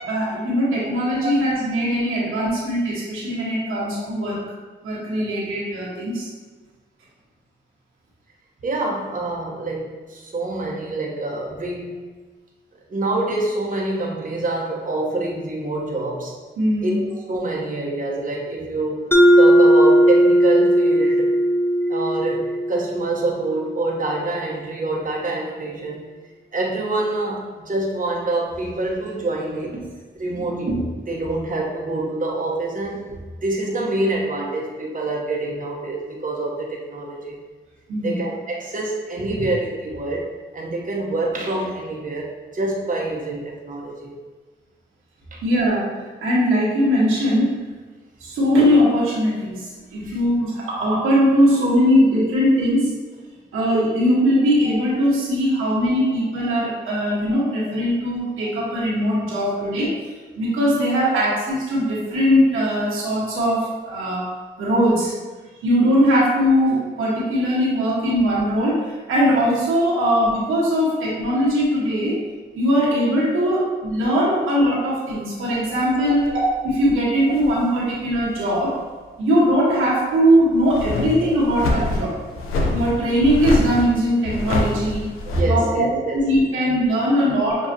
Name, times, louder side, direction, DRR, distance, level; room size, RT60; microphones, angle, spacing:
voice 1, 0.1-4.4 4.8-6.3 16.6-17.0 30.3-30.6 37.9-38.2 45.4-45.9 46.2-47.6 48.2-52.9 53.5-59.9 60.4-64.3 64.6-65.2 65.6-72.2 72.5-76.3 76.6-78.8 79.2-82.1 82.7-85.0 85.4-85.8 86.2-87.7, equal, 90° right, -7 dB, 1.3 m, -20 dB
voice 2, 8.6-12.0 12.9-16.3 16.8-21.4 21.8-26.0 26.5-29.9 30.1-33.0 33.4-37.4 38.0-44.1 45.3-45.4 50.0-50.1 56.0-56.1 59.3-59.4 61.1-61.2 76.1-76.3 81.1-81.2 81.8-81.9 85.3-86.2, right 2 dB, 40° right, -2 dB, 0.9 m, -26 dB
Mallet percussion, 19.1-23.7, equal, 10° left, 0.5 m, -16 dB
sound 1, 76.2-76.4 77.2-77.8 78.3-78.4 80.6-85.4, left 2 dB, 85° left, 0.5 m, -25 dB
6.4 x 2.3 x 2.7 m, 1.3 s
supercardioid pair, 45°, 21 cm